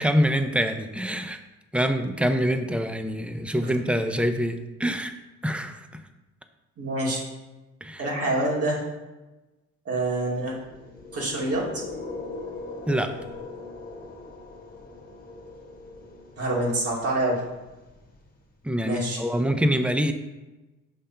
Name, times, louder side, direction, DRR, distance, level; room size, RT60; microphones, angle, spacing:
voice 1, 0.0-1.4 1.7-5.1 5.4-6.0 7.8-8.1 12.9-13.1 18.6-20.1, equal, 5° right, 8 dB, 0.5 m, -25 dB
voice 2, 6.8-7.2 8.0-8.8 9.8-10.5 11.1-11.8 16.4-17.4 18.8-19.2, right 1 dB, 50° right, -4 dB, 2.4 m, -26 dB
sound 1, 10.4-18.5, left 3 dB, 30° left, 1.7 m, -41 dB
6.6 x 3.4 x 5.6 m, 1.1 s
cardioid pair, 90°, 30 cm